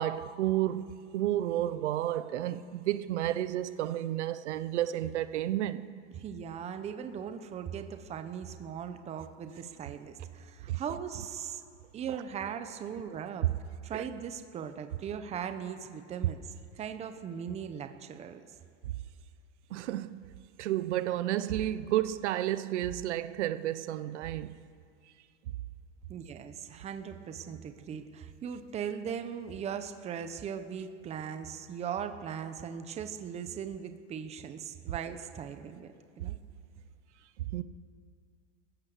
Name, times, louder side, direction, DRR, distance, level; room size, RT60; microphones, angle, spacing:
voice 1, 0.0-5.8 10.7-10.8 13.4-13.5 13.9-14.1 19.7-20.2 20.6-24.6 37.4-37.6, right 13 dB, 70° right, 0.9 m, -31 dB
voice 2, 6.1-11.6 11.9-13.5 13.8-16.5 16.7-18.4 26.1-36.4, right 8 dB, 20° right, 1.0 m, -39 dB
27.0 x 15.0 x 6.7 m
supercardioid pair, 155°, 35 cm